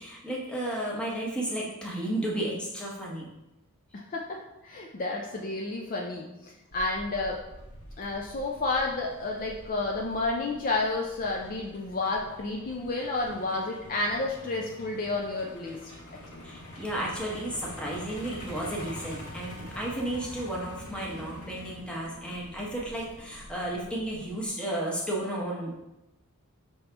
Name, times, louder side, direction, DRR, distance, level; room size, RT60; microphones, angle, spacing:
voice 1, 0.0-3.3 16.4-25.8, right 1 dB, 5° left, -4 dB, 0.9 m, -33 dB
voice 2, 3.9-7.4 8.0-15.8 16.3-16.4, left 2 dB, 40° left, -1 dB, 0.4 m, -31 dB
Truck, 6.7-24.5, equal, 90° left, 1.1 m, -46 dB
5.5 x 2.9 x 3.3 m, 0.96 s
head